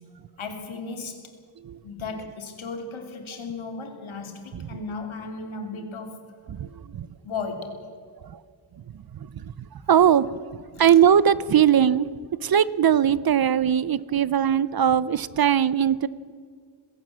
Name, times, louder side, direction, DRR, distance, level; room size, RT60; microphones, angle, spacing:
voice 1, 0.4-1.2 1.8-6.2 7.2-7.9, left 4 dB, 85° left, 5 dB, 3.1 m, -35 dB
voice 2, 6.5-7.1 8.2-8.4 9.9-10.5 10.8-12.1 12.4-16.1, right 9 dB, 50° right, 18 dB, 0.7 m, -20 dB
20.5 x 17.0 x 7.5 m, 2.1 s
wide cardioid pair, 150°, 47 cm